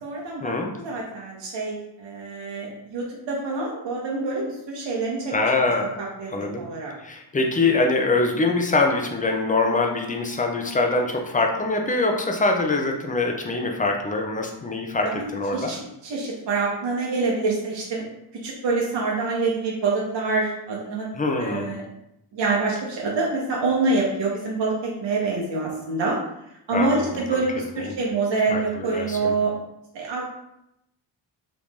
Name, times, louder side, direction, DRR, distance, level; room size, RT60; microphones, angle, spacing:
voice 1, 0.0-5.3 5.8-6.9 15.0-15.8 16.0-18.0 18.4-21.1 21.4-21.8 22.3-26.2 26.7-29.5 29.9-30.2, right 3 dB, 70° right, -3 dB, 0.8 m, -26 dB
voice 2, 5.3-5.9 6.3-6.6 7.0-15.1 15.3-15.7 21.2-21.8 26.7-27.0 27.9-28.0 28.5-29.3, left 3 dB, 20° left, 2 dB, 0.4 m, -23 dB
3.0 x 2.5 x 3.5 m, 0.82 s
wide cardioid pair, 115°, 45 cm